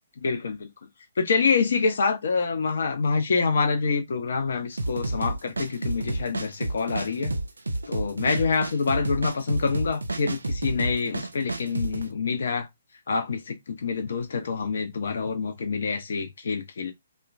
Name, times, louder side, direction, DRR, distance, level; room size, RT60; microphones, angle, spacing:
voice 1, 0.2-0.7 1.2-7.3 7.9-12.7 13.1-16.9, left 5 dB, 55° left, 0.5 m, -26 dB
sound 1, 4.8-12.0, right 2 dB, 75° right, 0.4 m, -30 dB
2.9 x 2.1 x 2.4 m
figure-of-eight pair, 130°, 0 cm